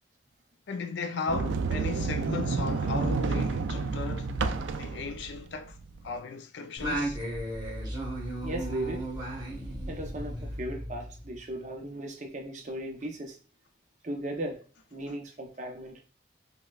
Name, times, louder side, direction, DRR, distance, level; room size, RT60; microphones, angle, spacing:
voice 1, 0.7-4.3 4.8-5.8 6.0-7.2, left 4 dB, 70° left, 0.4 m, -36 dB
Sliding door, 1.3-6.1, right 4 dB, 80° right, 0.4 m, -30 dB
Singing, 6.8-11.5, right 1 dB, 20° right, 1.3 m, -35 dB
voice 2, 8.4-9.0 9.9-13.3 14.0-14.6 14.9-16.0, right 1 dB, 40° right, 0.6 m, -37 dB
5.5 x 2.1 x 2.3 m
head